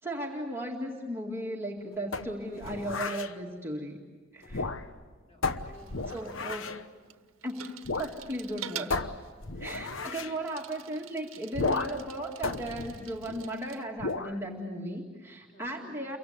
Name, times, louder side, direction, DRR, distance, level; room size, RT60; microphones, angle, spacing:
voice 1, 0.0-4.0 4.3-4.7 6.1-6.7 7.4-7.7 8.0-9.0 9.6-16.2, right 1 dB, 10° right, -2 dB, 2.1 m, -36 dB
sound 1, 2.1-3.3 4.4-5.1 5.4-6.8 7.8-8.2 8.4-8.5 8.9-10.4 11.5-12.1 12.4-13.5 14.0-14.4, left 3 dB, 70° left, 1.0 m, -33 dB
voice 2, 4.4-4.8 5.2-6.4 6.6-7.2 9.3-9.8 15.5-16.0, equal, 30° left, 0 dB, 4.1 m, -57 dB
Bicycle, 5.5-13.9, right 10 dB, 80° right, 1.1 m, -47 dB
29.5 x 24.0 x 8.1 m, 1.5 s
head